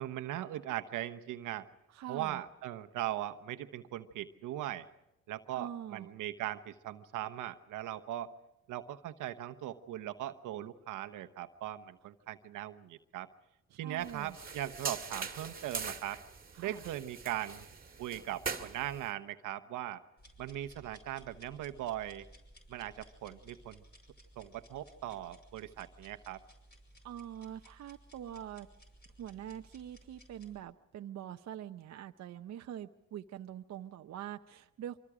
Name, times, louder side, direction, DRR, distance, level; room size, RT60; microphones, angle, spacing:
voice 1, 0.0-1.7 2.1-4.9 5.3-8.3 8.7-13.3 13.8-16.2 16.6-17.7 18.0-20.0 20.4-22.3 22.7-23.8 24.4-26.4, right 13 dB, 90° right, 9 dB, 1.1 m, -39 dB
voice 2, 1.9-2.4 5.5-6.1 13.7-14.4 16.6-16.9 27.0-28.7 29.2-35.0, right 11 dB, 60° right, 7 dB, 0.7 m, -44 dB
sound 1, 14.0-19.1, right 5 dB, 30° right, 2.0 m, -42 dB
sound 2, 20.2-30.6, right 1 dB, 35° left, 5.7 m, -59 dB
25.0 x 24.5 x 5.0 m, 0.89 s
cardioid pair, 90°, 30 cm